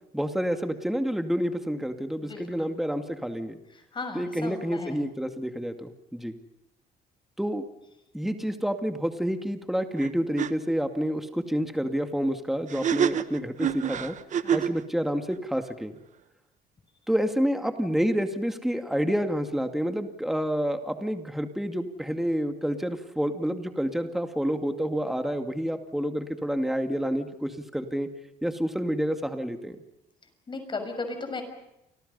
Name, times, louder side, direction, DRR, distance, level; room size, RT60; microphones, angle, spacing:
voice 1, 0.1-3.6 4.1-6.3 7.4-7.6 8.1-14.1 14.5-16.0 17.1-28.1 28.4-29.8, equal, ahead, 6 dB, 2.3 m, -28 dB
voice 2, 2.3-2.7 3.9-5.0 14.4-14.6 30.5-31.4, left 3 dB, 30° left, 7 dB, 6.7 m, -35 dB
sound 1, 10.0-10.1 10.4-10.5 12.7-14.8, right 8 dB, 45° right, 1.2 m, -27 dB
29.5 x 25.0 x 5.6 m, 0.88 s
cardioid pair, 110°, 17 cm